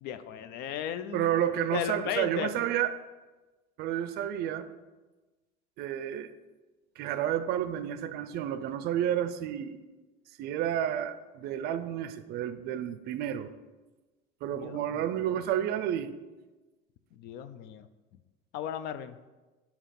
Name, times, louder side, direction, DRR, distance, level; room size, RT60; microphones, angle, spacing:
voice 1, 0.0-1.3 1.7-2.5 14.6-15.0 17.1-17.9 18.5-19.2, left 9 dB, 65° left, 12 dB, 0.4 m, -35 dB
voice 2, 1.1-2.9 3.8-4.7 5.8-6.3 7.0-9.8 10.4-13.5 14.4-16.1, right 10 dB, 60° right, 12 dB, 0.4 m, -30 dB
6.8 x 2.9 x 5.7 m, 1.2 s
cardioid pair, 140°, 18 cm